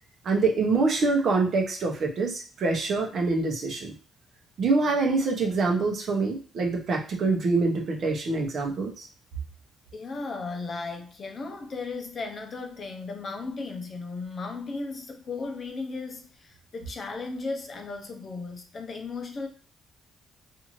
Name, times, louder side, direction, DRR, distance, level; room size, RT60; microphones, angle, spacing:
voice 1, 0.2-3.9 4.6-9.1, right 3 dB, 60° right, 0.8 m, -25 dB
voice 2, 9.9-19.5, left 3 dB, 45° left, 0.6 m, -36 dB
2.6 x 2.5 x 3.0 m
cardioid pair, 90°, 0 cm